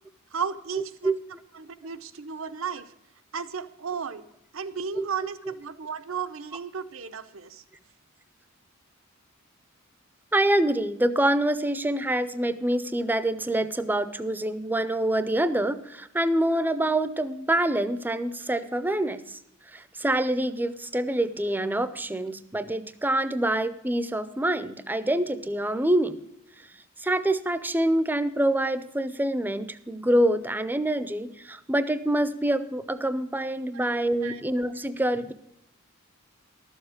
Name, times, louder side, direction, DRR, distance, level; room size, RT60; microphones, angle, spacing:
voice 1, 0.3-1.1 1.5-2.9 3.3-4.2 4.5-7.6 33.7-33.9 34.2-34.4, right 6 dB, 70° right, 12 dB, 0.8 m, -34 dB
voice 2, 10.3-19.4 19.7-26.2 27.0-35.3, right 1 dB, 10° right, 13 dB, 0.5 m, -26 dB
12.5 x 7.2 x 6.4 m, 0.79 s
head